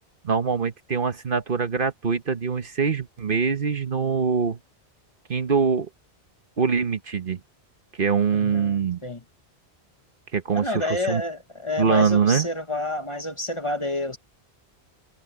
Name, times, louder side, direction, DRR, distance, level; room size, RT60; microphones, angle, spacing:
voice 1, 0.2-4.6 5.3-5.9 6.6-7.4 8.0-9.0 10.3-11.2 11.8-12.5, right 6 dB, 55° right, 1.3 m, -23 dB
voice 2, 8.3-9.2 10.5-14.2, left 2 dB, 30° left, 1.2 m, -29 dB
omnidirectional pair, 1.1 m